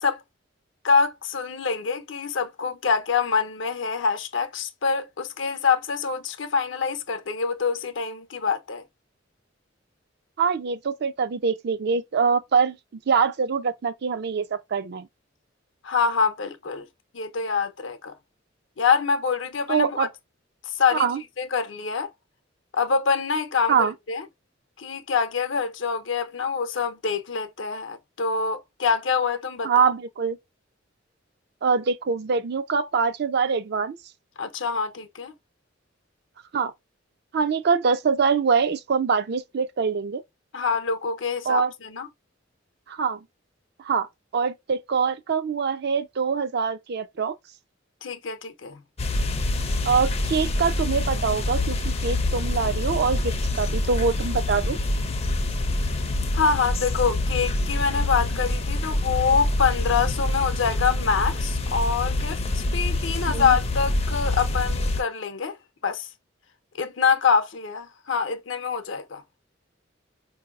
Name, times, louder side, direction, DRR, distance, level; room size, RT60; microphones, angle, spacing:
voice 1, 0.8-8.8 15.8-16.9 17.1-18.1 18.8-20.1 20.7-21.1 21.4-22.1 22.7-24.2 24.8-29.9 34.4-35.3 40.5-42.1 48.0-48.8 56.3-65.6 65.8-66.1 66.8-69.2, left 5 dB, 70° left, 0.7 m, -25 dB
voice 2, 10.4-12.8 13.1-15.1 19.7-20.1 20.9-21.2 23.7-23.9 29.6-30.4 31.6-34.0 36.5-36.7 37.3-40.2 41.5-41.7 42.9-43.2 43.8-44.1 44.3-47.3 49.9-54.8 63.3-63.5, right 5 dB, 55° right, 0.5 m, -24 dB
sound 1, 49.0-65.0, left 2 dB, 30° left, 0.5 m, -26 dB
4.6 x 2.8 x 2.3 m
head